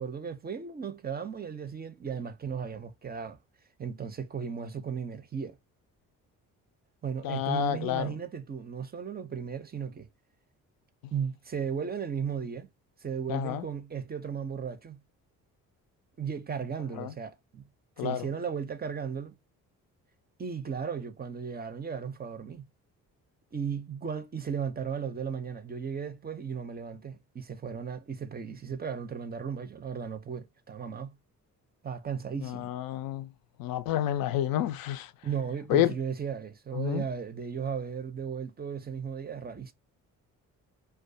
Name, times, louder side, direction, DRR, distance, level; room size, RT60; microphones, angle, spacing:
voice 1, 0.0-3.4 3.8-5.6 7.0-10.1 11.1-12.7 13.0-15.0 16.2-17.6 18.0-19.4 20.4-22.6 23.5-31.2 31.8-32.7 35.2-39.7, right 7 dB, 25° right, 0.5 m, -35 dB
voice 2, 7.2-8.1 13.3-13.6 17.0-17.1 18.0-18.3 32.4-33.3 33.6-35.1 35.7-35.9 36.7-37.0, left 12 dB, 65° left, 0.5 m, -29 dB
2.3 x 2.2 x 2.6 m
hypercardioid pair, 55°, 38 cm